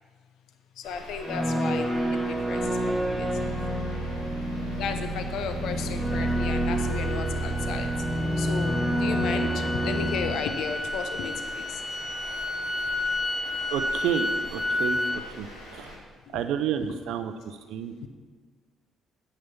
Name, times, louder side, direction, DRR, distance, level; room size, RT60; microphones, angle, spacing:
sound 1, 0.8-16.0, left 1 dB, 75° left, 2.6 m, -44 dB
voice 1, 0.8-2.6 3.1-3.5 4.7-7.9 8.4-11.7 16.3-16.4 16.9-17.0, left 6 dB, 60° left, 8 dB, 0.8 m, -34 dB
sound 2, 1.2-10.3, right 1 dB, 5° right, 1.7 m, -28 dB
sound 3, 6.1-15.2, left 2 dB, 15° left, 0.9 m, -32 dB
voice 2, 13.7-15.0 15.3-15.5 15.7-15.9 16.3-18.1, right 9 dB, 65° right, 9 dB, 0.6 m, -30 dB
9.4 x 5.7 x 8.2 m, 1.5 s
figure-of-eight pair, 45°, 0 cm